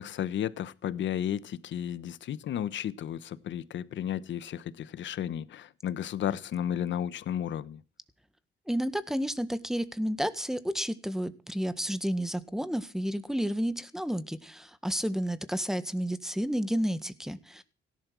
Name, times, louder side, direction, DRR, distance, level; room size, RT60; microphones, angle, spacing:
voice 1, 0.0-7.8, left 10 dB, 70° left, 1.2 m, -33 dB
voice 2, 8.7-17.6, equal, ahead, 1.7 m, -31 dB
17.0 x 11.5 x 6.2 m
cardioid pair, 90°, 20 cm